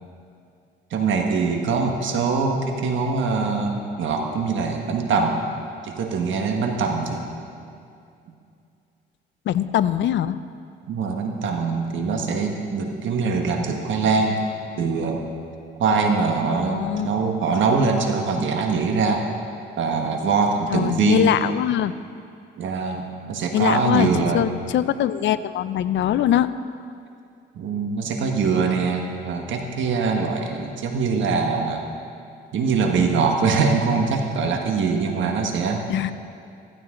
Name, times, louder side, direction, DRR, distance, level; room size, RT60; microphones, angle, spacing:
voice 1, 0.9-5.4 5.8-7.3 10.9-14.4 14.8-15.3 15.8-19.3 19.8-21.3 22.6-24.5 27.5-31.9 32.5-35.8, right 4 dB, 70° right, 2 dB, 1.5 m, -23 dB
voice 2, 9.5-10.4 16.7-17.1 20.7-21.9 23.5-26.5 35.9-36.1, left 11 dB, 70° left, 14 dB, 0.6 m, -22 dB
15.0 x 15.0 x 3.8 m, 2.5 s
cardioid pair, 90°, 20 cm